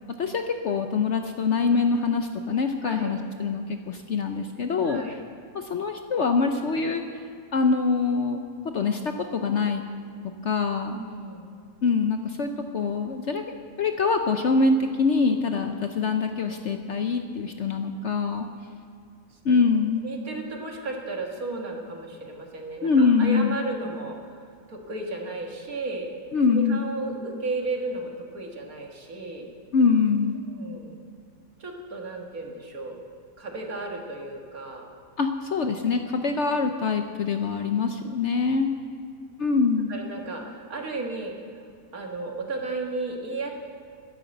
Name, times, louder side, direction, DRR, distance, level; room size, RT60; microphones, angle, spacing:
voice 1, 0.2-5.0 5.5-9.8 10.4-11.0 11.8-13.4 13.8-18.5 19.4-20.0 22.8-23.6 26.3-26.8 29.7-30.4 35.2-38.7 39.4-39.9, left 4 dB, 55° left, 6 dB, 0.9 m, -24 dB
voice 2, 2.8-3.1 4.8-5.2 10.9-11.5 19.3-19.7 20.0-24.4 24.7-26.1 26.5-29.5 30.5-31.0 31.6-33.0 33.4-34.9 36.2-36.4 39.9-41.6 41.9-43.6, right 3 dB, 60° right, 1 dB, 2.2 m, -34 dB
12.5 x 11.0 x 7.9 m, 2.3 s
omnidirectional pair, 1.7 m